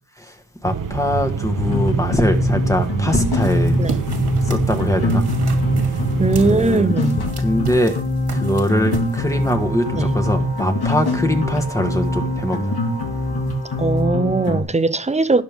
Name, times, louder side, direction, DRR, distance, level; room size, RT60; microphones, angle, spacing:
voice 1, 0.6-3.8 4.4-5.3 6.4-6.9 7.4-8.0 8.3-12.8, left 1 dB, 10° left, 1.5 m, -22 dB
sound 1, 0.6-6.5, right 6 dB, 55° right, 1.0 m, -25 dB
sound 2, 1.6-14.6, left 1 dB, 75° left, 2.4 m, -23 dB
sound 3, 3.4-9.6, right 4 dB, 85° right, 2.4 m, -35 dB
voice 2, 6.2-7.2 9.9-10.2 13.8-15.4, right 3 dB, 20° right, 0.7 m, -19 dB
18.0 x 6.7 x 3.6 m
wide cardioid pair, 135°, 38 cm